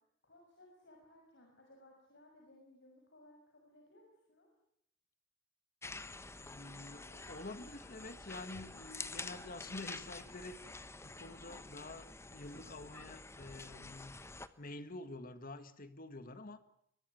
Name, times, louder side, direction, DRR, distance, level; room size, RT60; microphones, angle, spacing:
voice 1, 0.2-4.5, left 1 dB, 60° left, 1 dB, 6.2 m, -62 dB
sound 1, 5.8-14.5, left 3 dB, 15° left, 1.1 m, -48 dB
voice 2, 6.4-14.1 14.6-16.6, left 2 dB, 45° left, 11 dB, 1.8 m, -48 dB
23.0 x 22.0 x 9.3 m, 0.72 s
head